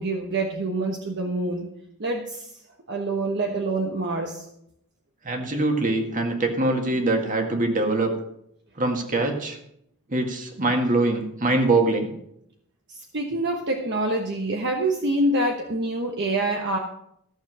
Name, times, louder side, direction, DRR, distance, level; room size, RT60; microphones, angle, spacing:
voice 1, 0.0-1.7 2.0-2.5 2.9-4.5 12.9-16.8, right 2 dB, 55° right, 2 dB, 1.2 m, -26 dB
voice 2, 5.2-8.1 8.8-9.6 10.1-12.1, right 2 dB, 40° right, 4 dB, 1.9 m, -23 dB
14.5 x 7.1 x 6.1 m, 0.75 s
head